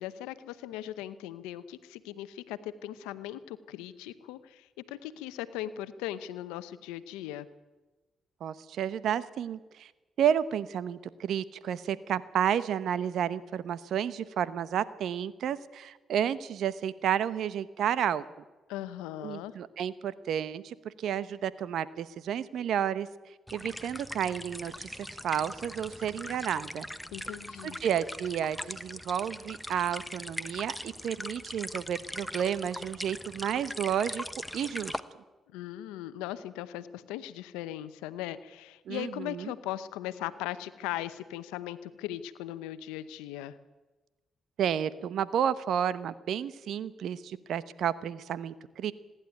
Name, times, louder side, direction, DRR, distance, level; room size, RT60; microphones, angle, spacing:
voice 1, 0.0-7.5 18.7-19.5 27.1-27.8 35.5-43.5, left 13 dB, 90° left, 14 dB, 0.8 m, -39 dB
voice 2, 8.4-9.9 10.2-18.2 19.2-23.1 23.5-26.9 27.6-34.2 34.5-35.0 38.9-39.5 44.6-48.9, right 9 dB, 70° right, 16 dB, 0.9 m, -31 dB
sound 1, 23.5-35.0, equal, ahead, 1.1 m, -41 dB
26.0 x 11.0 x 9.2 m, 1.2 s
supercardioid pair, 55°, 0 cm